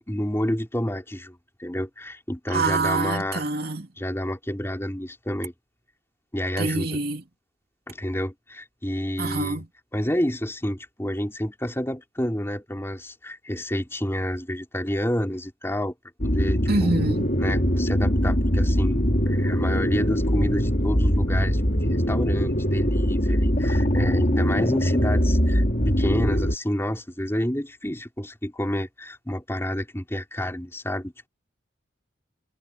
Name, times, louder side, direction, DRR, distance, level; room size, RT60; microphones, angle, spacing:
voice 1, 0.0-3.4 4.0-5.5 6.3-7.0 7.9-9.6 9.9-15.9 16.2-16.9 17.4-31.3, equal, 15° left, 3.7 m, -29 dB
voice 2, 2.5-3.9 6.6-7.2 9.2-9.7 16.7-17.3, right 3 dB, 50° right, 2.9 m, -25 dB
sound 1, 16.2-26.5, equal, 45° left, 4.6 m, -22 dB
head